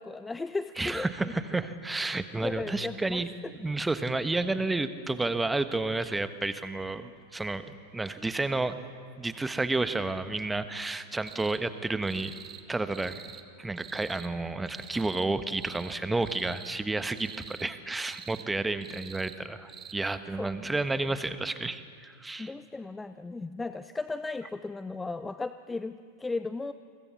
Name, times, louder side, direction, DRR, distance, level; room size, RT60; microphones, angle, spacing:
voice 1, 0.0-1.3 2.4-3.5 18.4-18.5 20.4-20.7 21.0-21.1 22.4-26.7, left 3 dB, 10° left, 13 dB, 0.6 m, -36 dB
voice 2, 0.8-3.3 3.5-8.8 9.2-12.3 12.7-13.2 13.6-22.5, right 2 dB, 10° right, 11 dB, 1.4 m, -31 dB
sound 1, 11.3-11.6 12.0-12.6 12.9-13.4 13.8-14.3 14.7-15.3 15.5-15.9 16.2-16.8 17.1-17.7 18.0-18.5 18.8-19.4 19.7-19.9, right 8 dB, 25° right, 1.8 m, -46 dB
29.5 x 24.0 x 7.2 m, 2.1 s
figure-of-eight pair, 90°, 0 cm